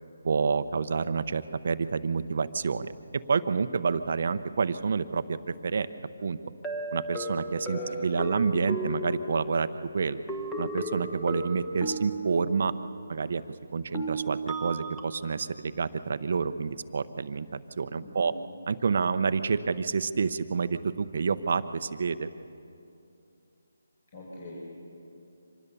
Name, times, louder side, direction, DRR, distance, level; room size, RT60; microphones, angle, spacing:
voice 1, 0.2-2.9 3.3-5.9 6.2-6.4 6.9-10.2 10.6-12.7 13.1-13.4 13.7-17.5 17.8-18.3 18.7-22.3, right 5 dB, 50° right, 12 dB, 0.7 m, -28 dB
sound 1, 5.5-5.6 6.6-9.8 10.3-12.9 13.9-15.0, right 1 dB, 5° left, 1.2 m, -35 dB
voice 2, 18.0-18.3 24.1-24.5, left 2 dB, 50° left, -4 dB, 5.4 m, -42 dB
25.5 x 19.5 x 7.0 m, 2.6 s
hypercardioid pair, 170°, 0 cm